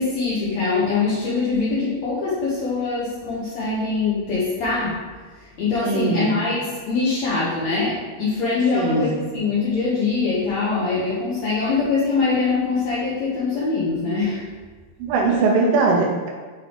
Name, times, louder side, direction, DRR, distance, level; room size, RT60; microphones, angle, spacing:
voice 1, 0.0-5.0 5.6-14.4 15.3-15.4, left 4 dB, 90° left, -8 dB, 1.5 m, -23 dB
voice 2, 5.8-6.3 8.7-9.1 15.0-16.3, right 3 dB, 75° right, 0 dB, 2.4 m, -20 dB
7.5 x 3.8 x 3.4 m, 1.4 s
omnidirectional pair, 4.6 m